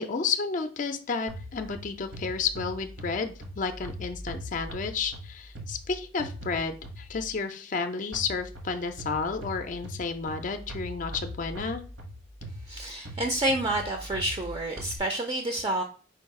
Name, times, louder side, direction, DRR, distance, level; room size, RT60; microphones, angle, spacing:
voice 1, 0.0-11.8, left 5 dB, 40° left, 8 dB, 0.4 m, -31 dB
sound 1, 1.3-7.3 8.1-15.0, equal, 70° right, 1.0 m, -41 dB
voice 2, 12.7-15.8, right 1 dB, 25° right, 3 dB, 0.5 m, -29 dB
4.6 x 2.3 x 4.6 m, 0.39 s
head